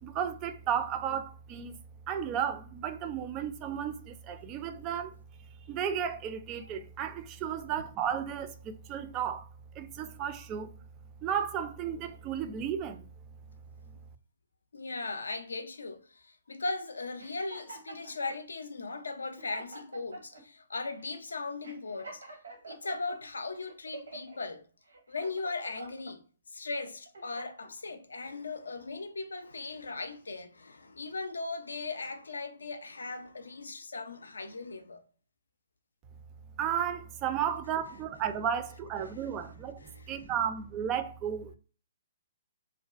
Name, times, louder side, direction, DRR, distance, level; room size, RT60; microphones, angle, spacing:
voice 1, 0.0-1.8 2.1-5.2 5.7-9.5 9.8-10.7 11.2-13.0 36.6-39.8 40.1-41.6, right 8 dB, 30° right, 0.3 m, -33 dB
voice 2, 14.7-22.2 22.6-24.7 25.1-26.2 26.5-35.0 39.1-39.2 39.8-40.1, left 3 dB, 80° left, 0.4 m, -38 dB
sound 1, 17.2-18.4 19.0-19.1 19.4-20.4 21.0-21.2 21.6-23.2 23.6-24.4 24.9-26.1 26.7-27.7, right 2 dB, 75° right, 0.8 m, -47 dB
2.4 x 2.1 x 2.4 m
figure-of-eight pair, 125°, 0 cm